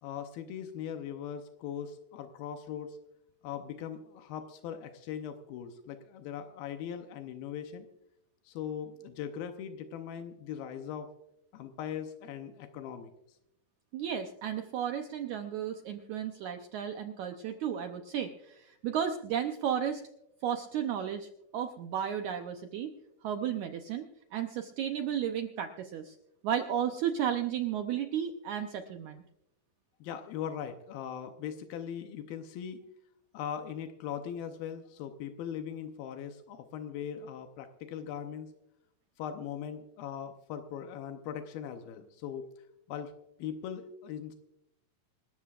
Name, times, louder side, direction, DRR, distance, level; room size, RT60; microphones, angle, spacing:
voice 1, 0.0-3.0 3.4-7.9 8.5-11.1 11.5-13.1 30.0-32.8 33.3-38.5 39.2-42.5 42.9-43.1 43.4-44.4, left 8 dB, 85° left, 6 dB, 2.7 m, -40 dB
voice 2, 13.9-20.0 20.4-22.9 23.2-26.2 26.4-29.2, right 9 dB, 80° right, 6 dB, 1.7 m, -33 dB
26.5 x 13.5 x 2.4 m, 0.86 s
omnidirectional pair, 4.2 m